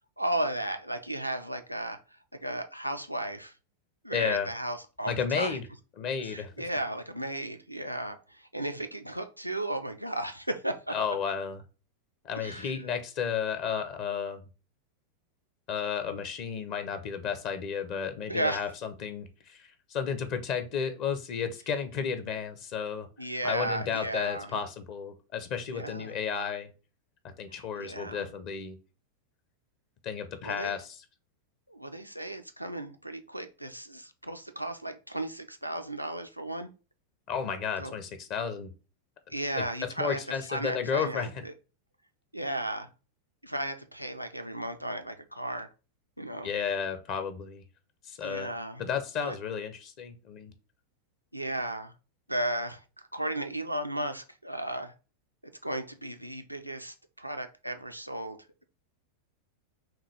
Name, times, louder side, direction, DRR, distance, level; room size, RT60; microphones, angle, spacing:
voice 1, 0.2-3.5 4.0-5.6 6.2-11.0 12.4-12.7 18.3-18.6 23.2-24.5 25.7-26.2 27.5-28.3 30.4-30.8 31.7-36.7 37.8-37.9 39.3-41.5 42.3-42.9 43.4-45.7 46.2-46.5 48.2-48.9 49.2-49.4 51.3-51.9 52.3-54.9 55.6-58.4, right 1 dB, 90° right, 7 dB, 0.5 m, -35 dB
voice 2, 4.1-4.5 5.1-5.6 6.0-6.5 10.9-11.6 12.2-14.4 15.7-23.1 23.4-26.7 27.4-28.8 30.0-30.9 37.3-38.7 39.5-39.6 40.0-41.3 46.4-47.6 48.0-48.5 48.8-50.5, left 7 dB, 40° left, 9 dB, 0.7 m, -33 dB
5.7 x 2.3 x 3.3 m, 0.33 s
figure-of-eight pair, 90°, 0 cm